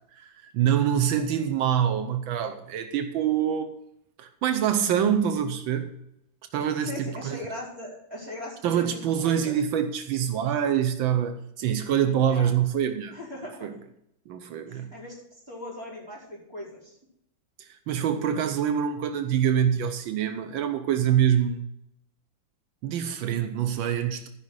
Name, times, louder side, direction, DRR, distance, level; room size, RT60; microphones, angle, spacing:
voice 1, 0.2-3.7 4.2-6.0 6.5-7.5 8.6-13.2 13.6-13.7 14.3-14.9 17.6-21.6 22.8-24.3, right 9 dB, 85° right, 8 dB, 1.6 m, -25 dB
voice 2, 6.8-9.6 12.3-12.5 13.1-13.7 14.7-17.0, left 1 dB, 10° right, -5 dB, 4.2 m, -39 dB
13.5 x 5.9 x 6.3 m, 0.78 s
omnidirectional pair, 2.1 m